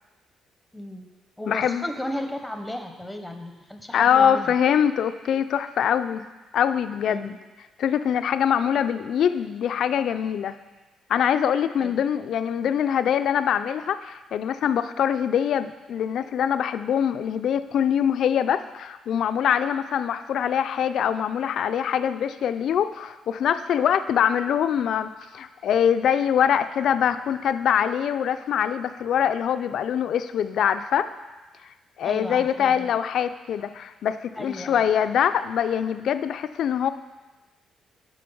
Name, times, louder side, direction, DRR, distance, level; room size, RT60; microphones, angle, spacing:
voice 1, 0.7-1.1 1.4-4.5 7.1-7.4 11.8-11.9 32.0-32.9 34.4-34.8, left 1 dB, 5° left, 5 dB, 0.8 m, -34 dB
voice 2, 1.5-1.8 3.9-6.2 6.5-7.3 7.8-10.5 11.1-31.1 32.0-36.9, left 8 dB, 70° left, 11 dB, 0.4 m, -23 dB
7.6 x 5.1 x 5.5 m, 1.2 s
cardioid pair, 90°, 0 cm